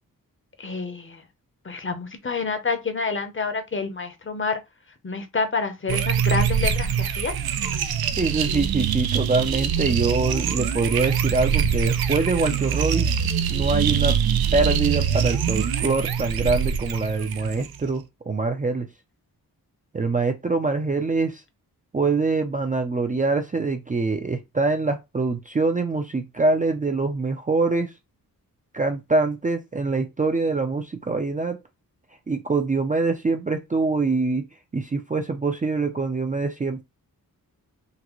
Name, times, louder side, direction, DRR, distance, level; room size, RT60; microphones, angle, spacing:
voice 1, 0.6-1.2 1.6-4.6 5.0-7.3, left 4 dB, 35° left, 0.7 m, -28 dB
sound 1, 5.9-17.9, right 7 dB, 80° right, 0.5 m, -24 dB
voice 2, 8.2-13.2 13.5-14.2 14.5-18.9 19.9-21.4 21.9-27.9 28.7-31.6 32.3-34.4 34.7-36.8, right 3 dB, 20° right, 0.4 m, -24 dB
3.8 x 2.1 x 3.0 m
wide cardioid pair, 85°, 36 cm